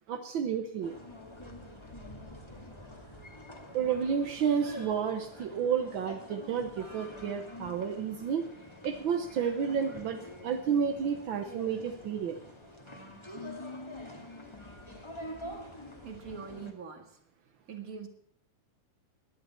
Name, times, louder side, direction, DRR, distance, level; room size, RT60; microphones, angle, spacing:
voice 1, 0.1-1.0 3.7-8.5 8.8-12.4, right 7 dB, 75° right, 5 dB, 1.1 m, -31 dB
sound 1, 0.8-16.7, left 1 dB, 10° left, 1.7 m, -46 dB
voice 2, 16.0-17.2 17.7-18.1, right 6 dB, 35° right, 4 dB, 1.9 m, -43 dB
21.0 x 11.0 x 4.4 m, 0.67 s
omnidirectional pair, 3.4 m